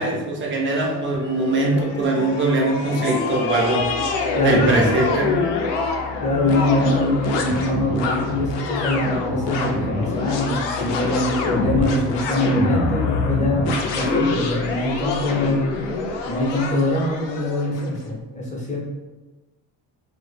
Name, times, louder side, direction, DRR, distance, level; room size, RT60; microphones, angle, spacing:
voice 1, 0.0-3.9 4.4-5.4, right 2 dB, 30° right, 0 dB, 0.4 m, -21 dB
sound 1, 0.8-17.9, left 4 dB, 80° left, 0.5 m, -25 dB
voice 2, 4.3-4.8 6.2-15.6 16.3-18.8, left 1 dB, 20° left, -4 dB, 0.5 m, -23 dB
2.0 x 2.0 x 3.1 m, 1.2 s
cardioid pair, 135°, 41 cm